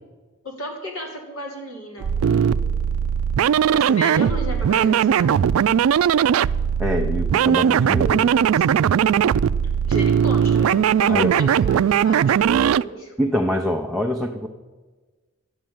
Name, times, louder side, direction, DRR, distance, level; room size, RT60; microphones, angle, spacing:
voice 1, 0.4-2.6 3.7-5.5 9.8-13.1, equal, 85° left, 1 dB, 3.2 m, -33 dB
sound 1, 2.0-12.8, right 8 dB, 90° right, 0.3 m, -19 dB
voice 2, 6.8-8.3 11.1-11.4 13.2-14.5, equal, ahead, 0 dB, 0.6 m, -24 dB
12.0 x 7.5 x 9.3 m, 1.3 s
head